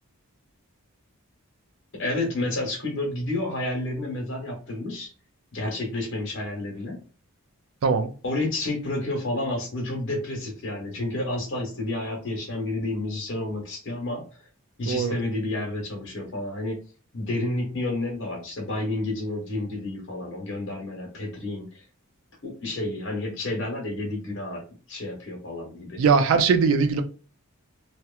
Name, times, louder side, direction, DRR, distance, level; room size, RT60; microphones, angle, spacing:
voice 1, 2.0-5.1 5.5-7.0 8.2-14.2 14.8-16.8 17.1-21.8 22.4-24.6 24.9-26.0, left 2 dB, 55° left, 0.9 m, -30 dB
voice 2, 26.0-27.0, right 5 dB, 70° right, 0.4 m, -20 dB
2.8 x 2.1 x 2.3 m
head